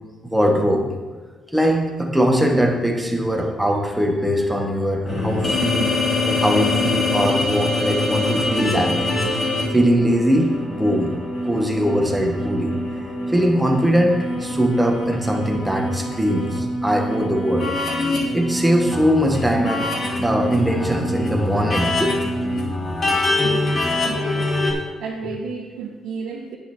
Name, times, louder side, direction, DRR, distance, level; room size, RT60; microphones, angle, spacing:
voice 1, 0.3-0.9 1.5-6.0 6.3-9.1 9.7-11.2 11.4-12.7 13.3-17.7 18.3-22.5 25.2-25.3, equal, 5° right, 0 dB, 1.6 m, -21 dB
sound 1, 5.1-24.7, left 2 dB, 40° left, 3.1 m, -24 dB
voice 2, 23.3-24.6 25.0-26.6, right 5 dB, 90° right, -5 dB, 1.5 m, -33 dB
9.3 x 8.6 x 4.5 m, 1.4 s
cardioid pair, 130°, 0 cm